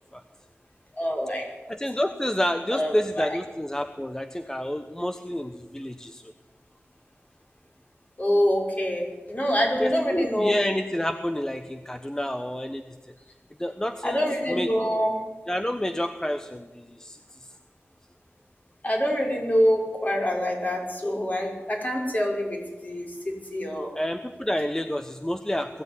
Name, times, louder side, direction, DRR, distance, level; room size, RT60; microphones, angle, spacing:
voice 1, 1.0-1.5 2.7-3.3 8.2-10.6 14.0-15.2 18.8-23.9, equal, 35° left, 0 dB, 5.8 m, -25 dB
voice 2, 1.7-6.2 9.8-12.8 13.6-14.2 14.5-14.7 15.5-17.2 23.9-25.8, equal, 15° left, 8 dB, 1.1 m, -29 dB
21.0 x 15.5 x 9.8 m, 1.2 s
wide cardioid pair, 70°, 4 cm